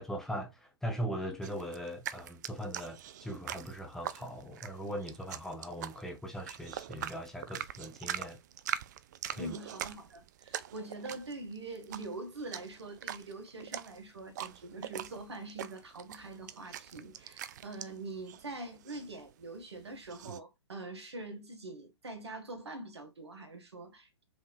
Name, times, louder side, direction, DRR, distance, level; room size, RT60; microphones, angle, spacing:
voice 1, 0.0-8.4 9.3-9.6, equal, 5° left, 0.8 m, -40 dB
sound 1, 1.4-20.4, right 11 dB, 40° right, 0.4 m, -43 dB
voice 2, 9.4-24.2, right 2 dB, 75° right, 1.8 m, -44 dB
5.1 x 3.7 x 2.5 m
figure-of-eight pair, 125°, 14 cm